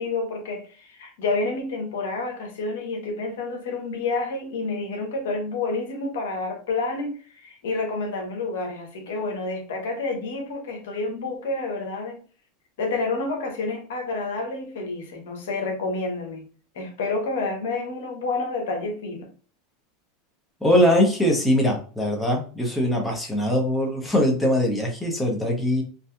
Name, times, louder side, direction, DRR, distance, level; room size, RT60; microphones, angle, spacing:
voice 1, 0.0-12.2 12.8-16.5 16.7-19.3, left 3 dB, 85° left, 0.8 m, -29 dB
voice 2, 20.6-25.8, equal, 5° left, 0.8 m, -21 dB
2.7 x 2.4 x 2.2 m
supercardioid pair, 120°, 0 cm